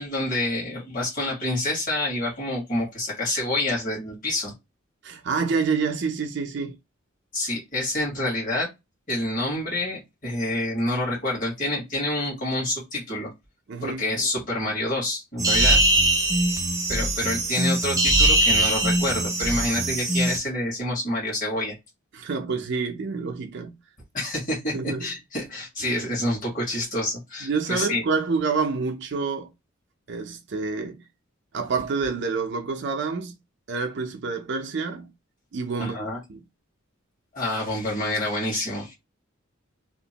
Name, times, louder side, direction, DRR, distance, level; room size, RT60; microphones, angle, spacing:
voice 1, 0.0-4.5 7.3-8.7 9.1-13.3 13.8-15.8 16.9-21.7 24.1-28.0 35.8-36.2 37.3-38.9, left 1 dB, 40° left, 1.5 m, -27 dB
voice 2, 5.0-6.8 13.7-14.0 22.1-23.7 24.7-25.1 27.4-29.5 30.1-31.0 31.5-33.3 33.7-35.1 35.5-36.4, right 4 dB, 55° right, 0.5 m, -28 dB
sound 1, 15.4-20.4, right 1 dB, 15° right, 0.6 m, -21 dB
2.8 x 2.5 x 2.8 m
head